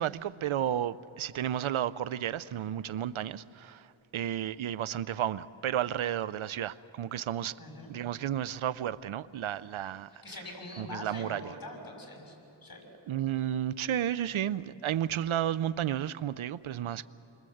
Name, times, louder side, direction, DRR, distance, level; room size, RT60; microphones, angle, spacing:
voice 1, 0.0-7.6 7.9-10.1 10.8-11.5 13.1-17.1, right 10 dB, 80° right, 17 dB, 0.7 m, -32 dB
voice 2, 7.6-7.9 10.2-12.4 12.6-12.8, left 2 dB, 45° left, 2 dB, 7.0 m, -43 dB
29.0 x 24.0 x 7.9 m, 2.9 s
cardioid pair, 65°, 49 cm